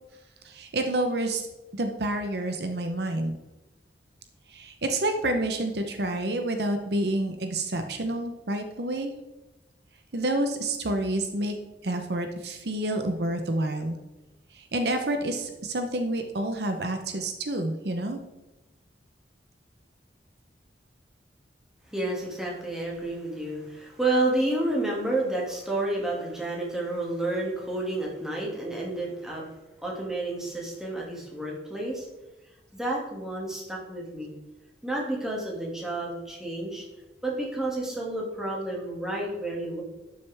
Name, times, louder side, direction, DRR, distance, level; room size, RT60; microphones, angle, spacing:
voice 1, 0.4-1.5 1.7-3.3 4.5-9.1 10.1-11.6 11.8-14.0 14.5-18.2, right 1 dB, 65° right, 6 dB, 0.8 m, -28 dB
voice 2, 21.9-29.5 29.8-32.1 32.7-34.3 34.8-36.8 37.2-39.8, right 2 dB, 5° right, -4 dB, 2.2 m, -30 dB
11.5 x 6.5 x 3.5 m, 1.0 s
head